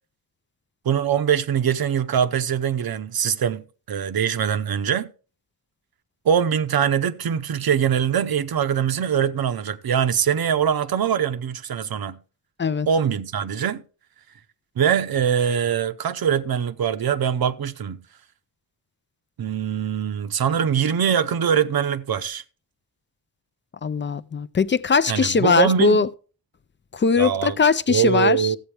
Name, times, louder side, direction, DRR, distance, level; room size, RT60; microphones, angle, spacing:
voice 1, 0.8-3.6 3.9-5.1 6.2-12.2 12.9-13.8 14.8-18.0 19.4-22.4 25.1-26.0 27.2-27.6 27.9-28.6, right 8 dB, 65° right, 0.8 m, -22 dB
voice 2, 23.8-26.1 26.9-28.5, left 5 dB, 30° left, 0.4 m, -20 dB
14.5 x 8.1 x 3.3 m
wide cardioid pair, 115°, 40 cm